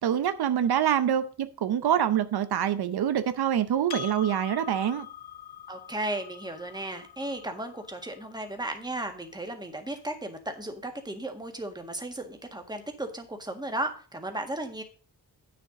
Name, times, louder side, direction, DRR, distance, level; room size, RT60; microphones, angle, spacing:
voice 1, 0.0-5.1, right 9 dB, 75° right, 0.7 m, -25 dB
Percussion, 3.9-8.7, left 9 dB, 70° left, 1.0 m, -43 dB
voice 2, 5.7-14.8, right 1 dB, 10° right, 1.7 m, -35 dB
9.0 x 6.8 x 5.1 m
wide cardioid pair, 100°, 39 cm